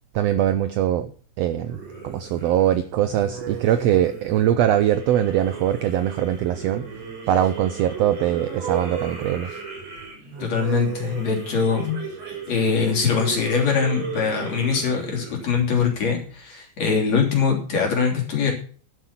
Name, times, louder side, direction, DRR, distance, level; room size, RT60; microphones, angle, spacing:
voice 1, 0.1-1.1 1.4-6.9 7.3-9.5, right 11 dB, 80° right, 11 dB, 1.5 m, -22 dB
sound 1, 1.6-16.5, right 6 dB, 55° right, 5.1 m, -35 dB
voice 2, 10.4-12.0 12.5-18.5, left 6 dB, 55° left, 0 dB, 4.2 m, -22 dB
11.5 x 7.7 x 5.8 m, 0.42 s
omnidirectional pair, 3.6 m